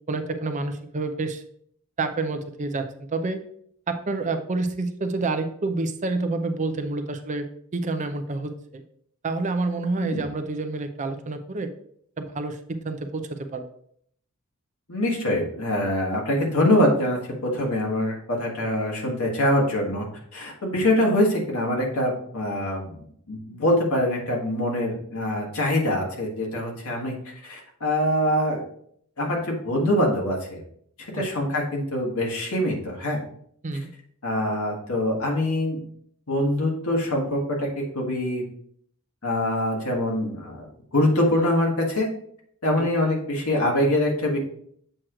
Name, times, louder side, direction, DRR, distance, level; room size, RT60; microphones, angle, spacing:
voice 1, 0.1-1.4 2.0-3.4 3.9-7.5 7.7-8.8 9.2-11.7 12.2-13.6 31.2-31.3 33.6-33.9 42.8-42.9, right 3 dB, 35° right, 8 dB, 0.5 m, -28 dB
voice 2, 14.9-20.1 20.3-27.1 27.4-28.6 29.2-30.6 31.1-33.2 34.2-35.8 36.3-38.4 39.2-40.7 40.9-42.1 42.6-44.4, left 1 dB, 70° left, -1 dB, 1.7 m, -24 dB
7.6 x 3.1 x 4.9 m, 0.66 s
head